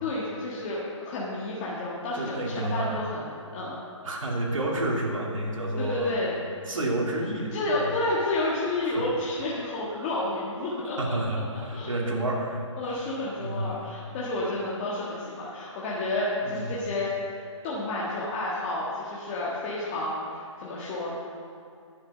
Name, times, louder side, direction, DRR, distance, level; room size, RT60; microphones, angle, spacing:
voice 1, 0.0-3.8 5.8-6.4 7.5-11.4 11.7-11.9 12.8-17.1 17.4-21.1, left 2 dB, 25° left, -7 dB, 1.5 m, -30 dB
voice 2, 2.1-3.0 4.0-6.1 6.7-7.5 7.8-7.9 8.8-9.0 9.9-10.1 11.0-13.1 13.4-13.9 16.4-16.8, right 1 dB, 80° right, -2 dB, 2.7 m, -30 dB
10.5 x 7.4 x 6.5 m, 2.5 s
hypercardioid pair, 155°, 17 cm